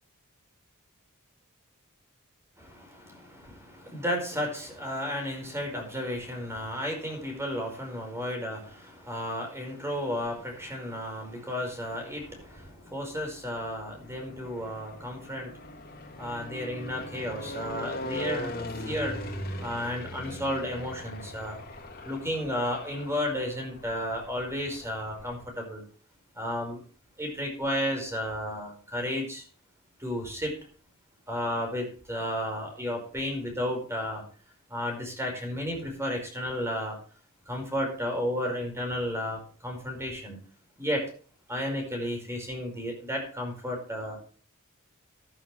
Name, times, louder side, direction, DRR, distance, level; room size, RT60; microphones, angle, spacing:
voice 1, 2.6-8.6 8.8-15.6 16.2-19.2 19.6-21.6 22.0-25.8 26.3-26.8 27.2-29.4 30.0-30.6 31.3-34.2 34.7-37.0 37.5-40.4 40.8-41.1 41.5-44.2, equal, 15° right, 3 dB, 5.1 m, -33 dB
sound 1, 10.5-10.7 11.4-25.5, left 1 dB, 45° left, 3.1 m, -41 dB
14.0 x 12.5 x 3.3 m, 0.41 s
head